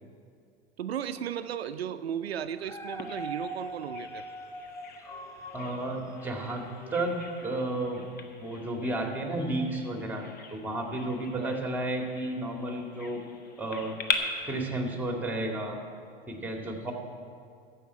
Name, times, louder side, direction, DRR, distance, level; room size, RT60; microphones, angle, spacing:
voice 1, 0.8-4.3 11.4-11.6, right 9 dB, 85° right, 11 dB, 0.5 m, -35 dB
Dog, 2.6-7.8 8.3-8.4, right 1 dB, 10° left, 0.9 m, -42 dB
Bird vocalization bird call bird song, 3.0-14.1, left 6 dB, 30° left, 1.3 m, -41 dB
voice 2, 5.5-6.6 6.9-8.0 8.4-10.2 10.5-13.2 13.6-14.0 14.4-15.8 16.3-16.9, right 1 dB, 5° right, 2 dB, 2.2 m, -32 dB
14.0 x 5.7 x 8.3 m, 2.3 s
hypercardioid pair, 90°, 30 cm